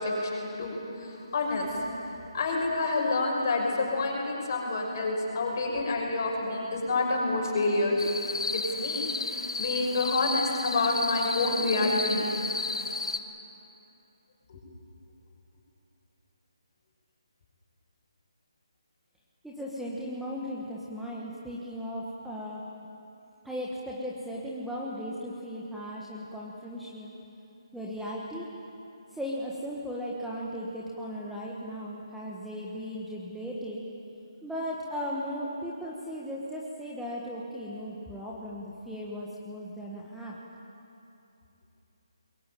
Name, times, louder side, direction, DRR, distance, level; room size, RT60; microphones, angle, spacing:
voice 1, 0.0-1.8 2.3-8.0 8.5-12.3 14.5-14.6, left 2 dB, 40° left, 0 dB, 6.0 m, -28 dB
sound 1, 8.0-13.2, left 3 dB, 80° left, 1.7 m, -33 dB
voice 2, 19.4-22.6 23.4-27.1 27.7-28.5 29.1-33.8 34.4-40.3, equal, ahead, -5 dB, 1.4 m, -37 dB
22.0 x 21.0 x 9.3 m, 2.8 s
hypercardioid pair, 165°, 3 cm